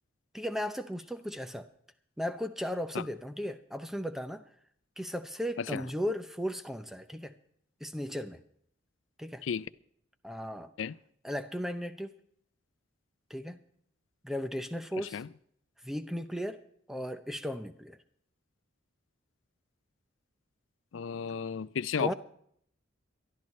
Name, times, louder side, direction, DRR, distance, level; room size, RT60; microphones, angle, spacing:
voice 1, 0.3-1.7 2.2-4.5 5.0-7.3 7.8-8.4 9.2-9.4 10.2-10.7 11.2-12.2 13.3-13.6 14.2-15.2 15.8-16.6 16.9-18.0 22.0-22.1, equal, ahead, 0.6 m, -36 dB
voice 2, 15.0-15.3 20.9-22.1, left 6 dB, 80° left, 0.4 m, -33 dB
23.0 x 12.0 x 3.2 m
head